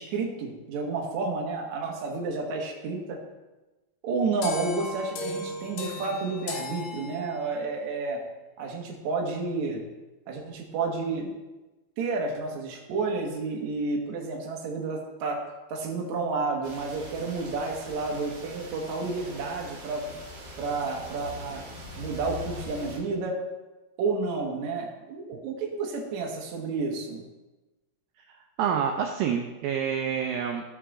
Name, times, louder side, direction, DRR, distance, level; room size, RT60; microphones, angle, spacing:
voice 1, 0.0-3.2 4.0-8.2 8.6-9.8 10.3-11.3 12.0-15.4 15.7-20.0 20.6-21.6 22.0-23.4 24.0-27.2, right 3 dB, 60° right, 0 dB, 2.2 m, -30 dB
sound 1, 4.4-7.7, left 3 dB, 90° left, 3.0 m, -37 dB
sound 2, 16.6-23.0, left 1 dB, 45° right, 2.5 m, -42 dB
voice 2, 28.6-30.6, right 7 dB, 80° right, 3 dB, 2.2 m, -27 dB
12.0 x 5.6 x 3.7 m, 1.1 s
omnidirectional pair, 4.4 m